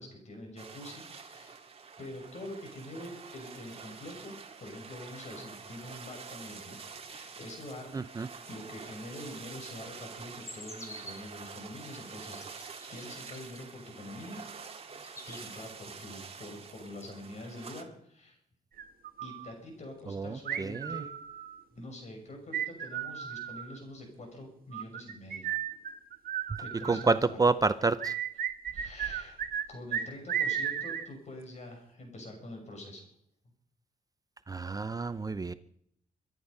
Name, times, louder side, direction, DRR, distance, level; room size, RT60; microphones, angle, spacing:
voice 1, 0.0-1.6 2.0-4.3 4.6-8.1 8.5-14.4 15.3-18.4 19.2-21.1 21.7-25.6 26.6-27.4 28.7-29.4 29.7-33.0, left 1 dB, 50° left, 3 dB, 6.5 m, -45 dB
sound 1, 0.6-17.8, right 5 dB, 40° right, 2.1 m, -47 dB
voice 2, 7.9-8.3 20.1-21.0 26.9-28.1 34.5-35.5, right 3 dB, 25° right, 13 dB, 0.6 m, -29 dB
sound 2, 10.4-11.4 12.0-13.6 14.2-14.6 14.9-15.6, equal, 20° left, 3.6 m, -49 dB
sound 3, 18.8-19.5 20.5-21.6 22.5-23.8 24.7-27.2 28.0-29.7 29.9-31.1, right 9 dB, 75° right, 1.5 m, -34 dB
24.5 x 10.5 x 5.5 m, 0.68 s
cardioid pair, 110°, 15 cm